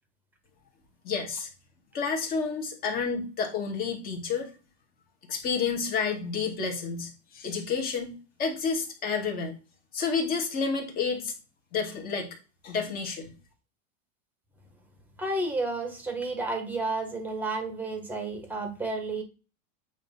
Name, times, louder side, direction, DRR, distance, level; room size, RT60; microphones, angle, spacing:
voice 1, 1.0-1.5 1.9-4.5 5.3-8.1 8.4-9.5 9.9-11.3 11.7-12.3 12.6-13.3, left 5 dB, 25° left, 2 dB, 1.9 m, -30 dB
voice 2, 15.2-19.2, right 2 dB, 5° right, 5 dB, 1.5 m, -31 dB
8.9 x 3.1 x 5.4 m, 0.32 s
supercardioid pair, 170°, 40 cm